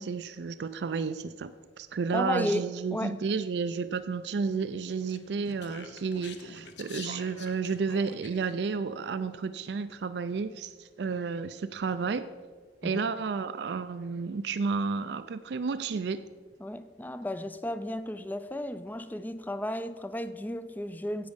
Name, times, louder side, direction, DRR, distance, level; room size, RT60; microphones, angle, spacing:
voice 1, 0.0-12.2 12.8-16.2, right 5 dB, 70° right, 11 dB, 0.4 m, -32 dB
voice 2, 2.1-2.6 2.9-3.1 12.8-13.0 16.6-21.3, left 1 dB, 10° left, 13 dB, 0.4 m, -33 dB
Speech, 5.1-8.5, left 5 dB, 80° left, 0.9 m, -46 dB
10.5 x 8.2 x 5.2 m, 1.5 s
head